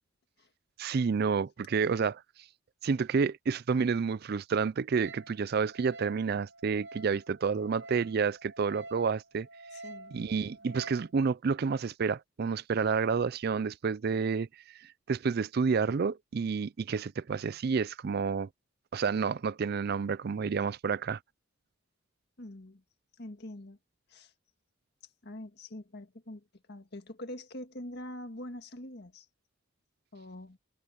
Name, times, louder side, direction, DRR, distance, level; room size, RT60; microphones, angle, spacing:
voice 1, 0.8-2.2 2.8-9.5 10.1-14.5 14.8-18.5 18.9-21.2, right 5 dB, 50° right, 0.4 m, -29 dB
Wind instrument woodwind instrument, 4.9-11.1, right 2 dB, 65° right, 7.3 m, -49 dB
voice 2, 9.7-10.2 22.4-22.8 23.2-23.8 24.1-24.3 25.2-26.4 26.7-29.3 30.1-30.6, left 1 dB, 55° left, 1.8 m, -44 dB
head